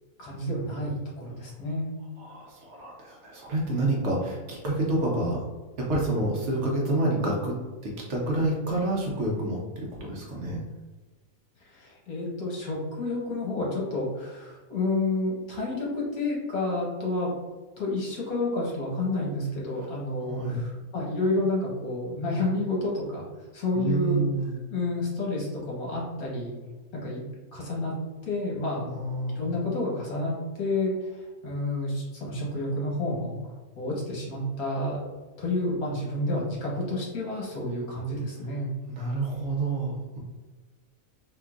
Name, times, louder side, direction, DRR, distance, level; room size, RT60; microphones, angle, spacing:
voice 1, 0.2-1.9 11.6-17.3 17.8-23.3 23.5-24.2 24.7-26.5 26.9-27.2 27.5-28.9 29.3-33.4 33.8-35.0 35.4-38.7, left 2 dB, 80° left, -4 dB, 1.4 m, -30 dB
voice 2, 2.2-5.4 5.8-7.6 7.8-10.6 20.2-20.6 23.7-24.5 28.9-29.5 38.9-40.2, right 2 dB, 60° right, -2 dB, 0.9 m, -28 dB
3.7 x 2.5 x 2.4 m, 1.3 s
omnidirectional pair, 1.5 m